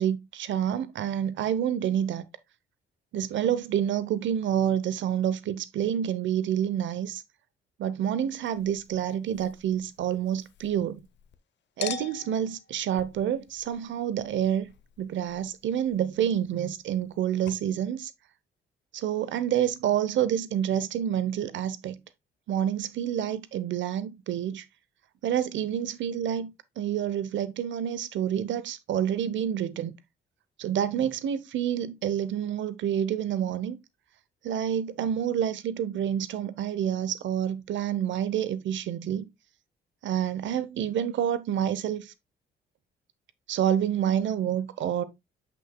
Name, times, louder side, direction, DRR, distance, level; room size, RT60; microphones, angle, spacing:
voice 1, 0.0-2.2 3.1-7.2 7.8-11.0 11.8-14.7 15.0-18.1 18.9-22.0 22.5-24.7 25.2-26.5 26.8-29.9 30.6-33.8 34.4-39.2 40.0-42.1 43.5-45.0, right 10 dB, 70° right, 0.8 m, -28 dB
Chink clink, 8.4-11.4 11.8-17.2 17.5-17.6, left 9 dB, 65° left, 0.8 m, -45 dB
7.8 x 6.1 x 2.2 m
cardioid pair, 90°, 20 cm